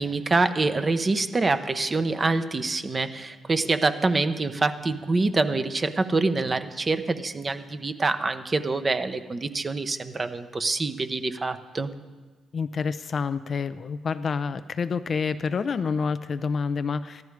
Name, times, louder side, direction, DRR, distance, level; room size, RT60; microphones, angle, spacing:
voice 1, 0.0-11.9, right 3 dB, 30° right, 9 dB, 0.8 m, -25 dB
voice 2, 12.5-17.2, left 5 dB, 45° left, 12 dB, 0.5 m, -28 dB
13.5 x 12.0 x 4.7 m, 1.3 s
cardioid pair, 90°, 0 cm